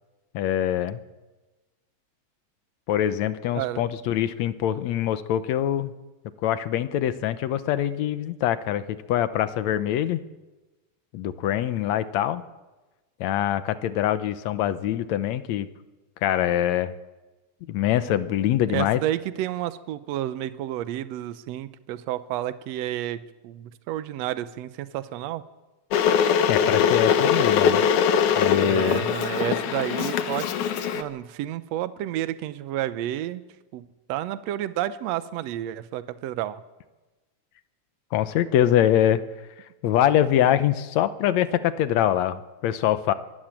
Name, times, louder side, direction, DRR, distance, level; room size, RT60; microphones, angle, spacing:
voice 1, 0.3-1.0 2.9-5.9 6.4-10.2 11.1-12.4 13.2-15.7 16.2-16.9 17.7-19.0 26.5-27.8 28.4-29.0 38.1-39.2 39.8-43.1, left 11 dB, 75° left, 12 dB, 2.1 m, -24 dB
voice 2, 18.7-25.4 28.6-30.5 30.9-33.4 33.7-33.8 34.1-36.6, right 13 dB, 70° right, 13 dB, 1.9 m, -30 dB
Water / Boiling, 25.9-31.0, left 7 dB, 90° left, 2.6 m, -22 dB
24.0 x 13.0 x 8.9 m, 1.1 s
omnidirectional pair, 3.4 m